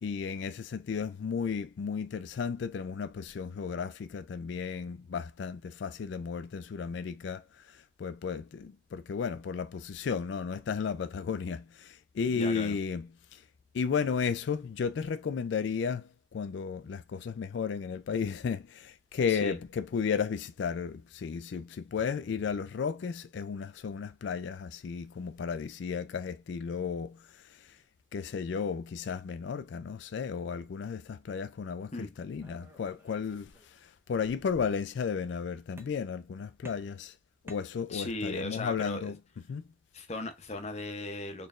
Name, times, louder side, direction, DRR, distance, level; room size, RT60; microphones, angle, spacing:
voice 1, 0.0-13.4 13.7-27.8 28.1-37.2 37.4-39.1 39.5-39.7, left 6 dB, 60° left, 0.3 m, -34 dB
voice 2, 12.3-12.8 19.3-19.6 31.9-32.1 37.9-39.1 39.9-41.5, left 2 dB, 35° left, 0.7 m, -37 dB
sound 1, 32.4-33.8 34.1-34.8 35.8-36.3 36.6-38.2, equal, 10° right, 0.6 m, -53 dB
4.1 x 3.2 x 2.4 m
head